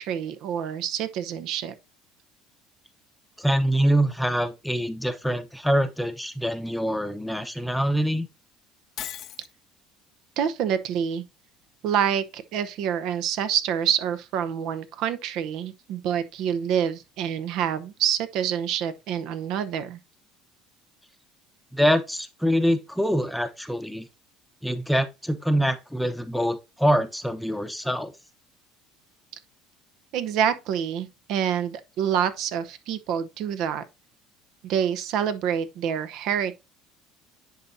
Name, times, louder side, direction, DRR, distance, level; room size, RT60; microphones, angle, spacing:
voice 1, 0.0-1.7 10.4-11.2 11.8-20.0 30.1-33.8 34.6-36.6, right 8 dB, 65° right, 0.8 m, -27 dB
voice 2, 3.4-8.3 21.7-24.1 24.6-28.1, equal, ahead, 0.8 m, -24 dB
Shatter, 9.0-9.5, left 11 dB, 50° left, 0.5 m, -36 dB
10.5 x 4.1 x 2.6 m
cardioid pair, 120°, 0 cm